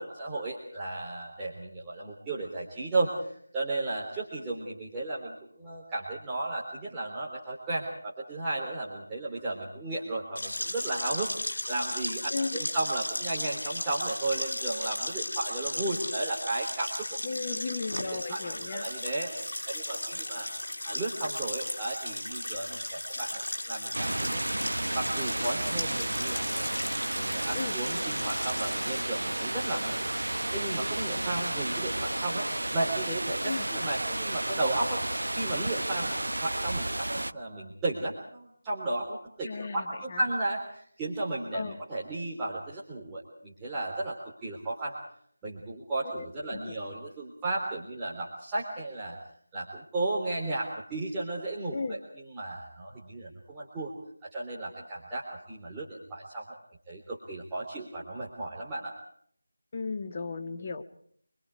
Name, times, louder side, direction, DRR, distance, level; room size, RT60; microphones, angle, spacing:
voice 1, 0.0-17.2 18.1-20.5 20.8-23.4 23.7-24.4 24.9-26.7 27.2-30.0 30.5-35.0 35.3-45.0 45.4-49.2 49.5-53.9 54.2-56.6 56.9-58.9, right 2 dB, 10° right, -7 dB, 3.6 m, -34 dB
sound 1, 10.4-29.0, left 1 dB, 60° left, 6.8 m, -36 dB
voice 2, 12.3-12.7 17.2-18.9 27.5-27.8 33.4-33.7 39.4-40.2 41.5-41.8 46.0-46.7 51.7-52.0 59.7-60.8, left 4 dB, 30° left, 6 dB, 1.5 m, -35 dB
sound 2, 23.9-37.3, right 1 dB, 75° right, 0.8 m, -32 dB
27.0 x 24.0 x 4.9 m, 0.63 s
figure-of-eight pair, 165°, 0 cm